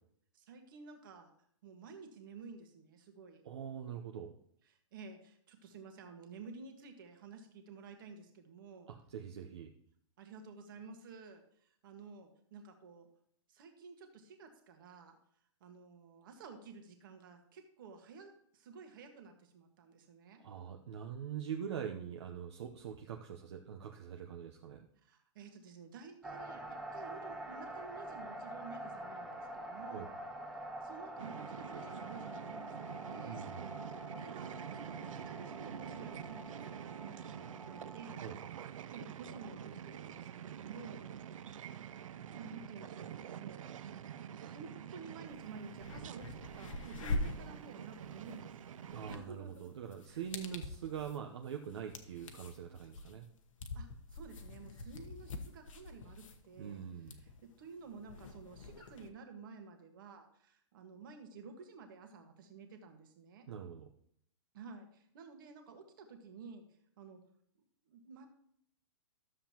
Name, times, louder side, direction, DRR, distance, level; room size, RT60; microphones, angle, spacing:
voice 1, 0.3-1.3 1.6-3.4 4.7-8.9 10.2-13.1 13.5-15.2 15.6-20.4 25.0-26.6 26.9-30.1 30.8-33.5 34.2-38.2 38.9-41.1 42.3-43.7 44.3-48.6 49.1-49.7 50.1-50.6 53.7-63.4 64.5-66.6 67.0-67.2 67.9-68.3, right 4 dB, 40° right, 5 dB, 1.5 m, -52 dB
voice 2, 3.4-4.4 8.9-9.7 20.4-24.9 29.9-30.1 33.2-33.7 38.2-38.4 48.9-53.3 56.6-57.2 63.5-63.9, right 8 dB, 60° right, 3 dB, 0.8 m, -43 dB
sound 1, 26.2-38.1, right 1 dB, ahead, 0.4 m, -46 dB
sound 2, 31.2-49.2, right 9 dB, 85° right, 0.5 m, -47 dB
sound 3, 45.3-45.4 45.7-59.1, left 2 dB, 80° left, 1.1 m, -45 dB
12.5 x 7.4 x 2.9 m, 0.68 s
hypercardioid pair, 175°, 16 cm